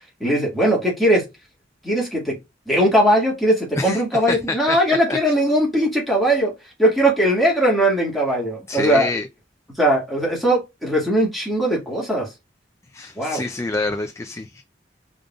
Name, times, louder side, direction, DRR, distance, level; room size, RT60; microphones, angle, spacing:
voice 1, 0.2-1.2 1.8-2.4 2.7-6.5 6.8-9.1 9.8-12.3 13.2-13.4, right 1 dB, ahead, 1.9 m, -19 dB
voice 2, 4.3-4.8 5.1-5.2 8.7-9.3 12.9-14.6, left 2 dB, 15° left, 0.3 m, -26 dB
5.1 x 3.8 x 2.3 m
head